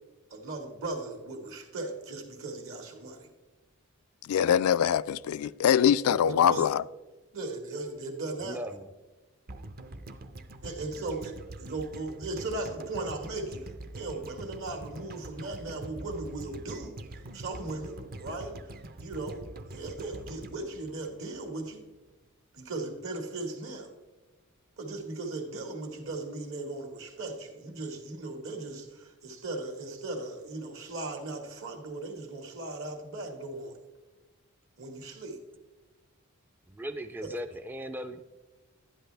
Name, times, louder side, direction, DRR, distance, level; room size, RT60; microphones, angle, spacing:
voice 1, 0.3-3.3 6.0-6.6 7.3-8.6 10.6-11.3 11.6-17.0 17.3-18.5 19.0-19.4 19.7-21.8 22.5-23.9 24.8-33.8 34.8-35.4 37.2-37.3, right 2 dB, 70° right, 1.8 m, -37 dB
voice 2, 4.2-6.8, left 9 dB, 85° left, 0.3 m, -23 dB
voice 3, 8.4-8.9 36.7-38.2, equal, 10° right, 0.3 m, -37 dB
sound 1, 9.5-21.7 22.0-22.1, right 1 dB, 45° right, 0.6 m, -44 dB
12.0 x 10.0 x 3.3 m
head